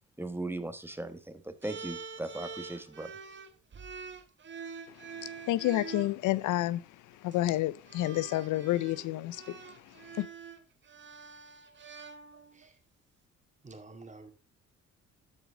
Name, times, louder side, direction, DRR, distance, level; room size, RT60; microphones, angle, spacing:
voice 1, 0.2-3.1, right 2 dB, 5° right, 1.3 m, -38 dB
sound 1, 1.6-6.1 7.1-7.4 7.9-12.7, right 5 dB, 40° right, 1.3 m, -45 dB
voice 2, 4.9-6.8 7.1-10.3, left 15 dB, 85° left, 0.5 m, -30 dB
voice 3, 13.6-14.3, right 3 dB, 25° right, 2.1 m, -49 dB
13.0 x 4.9 x 3.7 m
cardioid pair, 90°, 30 cm